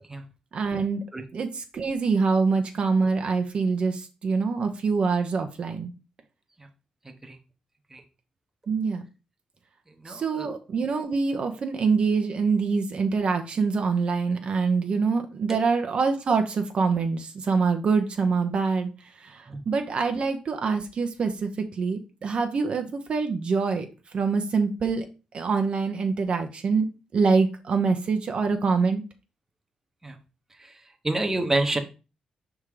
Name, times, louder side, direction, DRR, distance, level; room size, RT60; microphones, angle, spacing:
voice 1, 0.5-1.0 1.3-5.9 8.7-9.0 10.1-25.0 25.3-26.9 27.1-29.0, right 4 dB, 50° right, 6 dB, 0.8 m, -25 dB
voice 2, 7.0-7.4 7.9-8.0 10.0-10.5 19.5-19.6 30.0-30.2 30.6-31.8, right 2 dB, 15° right, 5 dB, 1.0 m, -29 dB
5.5 x 3.6 x 4.9 m, 0.31 s
cardioid pair, 100°, 2 cm